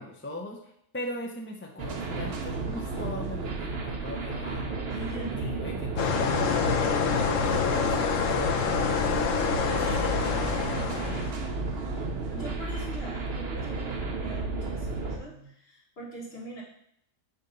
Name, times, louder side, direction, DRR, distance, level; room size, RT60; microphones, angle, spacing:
voice 1, 0.0-4.8 5.3-8.6, left 1 dB, 15° left, 1 dB, 0.5 m, -39 dB
sound 1, 1.8-15.2, right 3 dB, 55° right, 1.1 m, -33 dB
voice 2, 4.9-5.9 9.7-10.9 12.3-16.6, right 1 dB, 50° left, -4 dB, 1.9 m, -42 dB
sound 2, 6.0-11.3, left 5 dB, 80° left, 1.1 m, -26 dB
7.1 x 2.9 x 5.3 m, 0.71 s
omnidirectional pair, 1.3 m